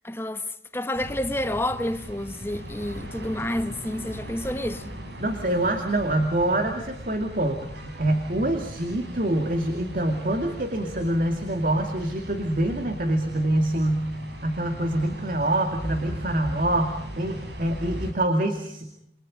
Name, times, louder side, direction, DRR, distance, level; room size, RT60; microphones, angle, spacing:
voice 1, 0.0-0.4 0.7-4.9, left 1 dB, 15° left, 1.2 m, -29 dB
sound 1, 0.9-18.1, equal, 75° right, 5.1 m, -39 dB
voice 2, 5.2-14.1 14.4-18.9, right 1 dB, 50° right, 2.3 m, -25 dB
29.0 x 23.5 x 5.2 m
head